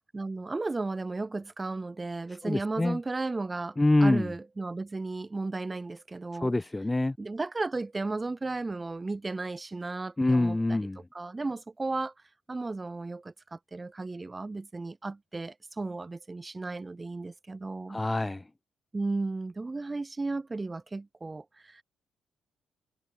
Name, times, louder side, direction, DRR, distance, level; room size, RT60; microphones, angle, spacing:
voice 1, 0.1-6.5 7.2-10.9 11.1-12.1 12.5-18.0 18.9-21.8, right 3 dB, 20° right, 6.4 m, -34 dB
voice 2, 2.4-3.0 3.8-4.3 6.4-7.2 10.2-11.0 17.9-18.4, left 2 dB, 15° left, 0.7 m, -25 dB
cardioid pair, 90°, 0 cm